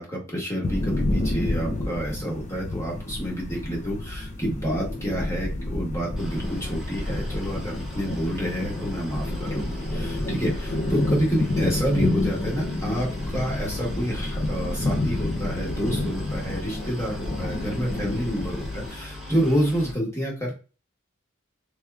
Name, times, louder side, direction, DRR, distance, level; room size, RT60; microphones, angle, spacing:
voice 1, 0.0-20.5, equal, 15° left, -3 dB, 1.1 m, -28 dB
sound 1, 0.6-18.9, left 1 dB, 35° left, 0.5 m, -29 dB
Boat Water vehicle, 6.2-19.9, left 2 dB, ahead, 0.7 m, -40 dB
3.2 x 2.9 x 2.3 m, 0.34 s
head